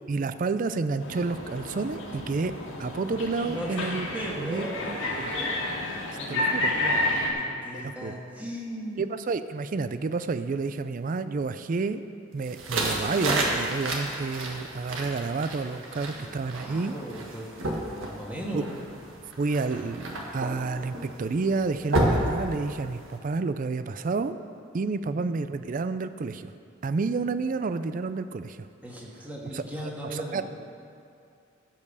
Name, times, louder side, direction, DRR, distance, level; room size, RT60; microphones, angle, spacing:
voice 1, 0.1-2.5 2.8-4.1 4.4-5.3 6.3-6.7 7.7-8.2 9.0-12.0 12.3-16.9 18.5-18.6 19.4-24.4 24.7-26.5 26.8-28.7 29.5-30.4, right 4 dB, 40° right, 11 dB, 0.4 m, -30 dB
sound 1, 1.0-7.3, left 1 dB, 80° left, 1.9 m, -30 dB
voice 2, 3.4-3.8 4.1-5.6 6.1-9.1 15.9-16.3 16.6-18.7 25.0-25.3 28.8-30.4, right 1 dB, 10° right, -3 dB, 1.7 m, -38 dB
sound 2, 12.4-23.2, right 1 dB, 80° right, 1.6 m, -31 dB
15.5 x 5.4 x 6.7 m, 2.5 s
head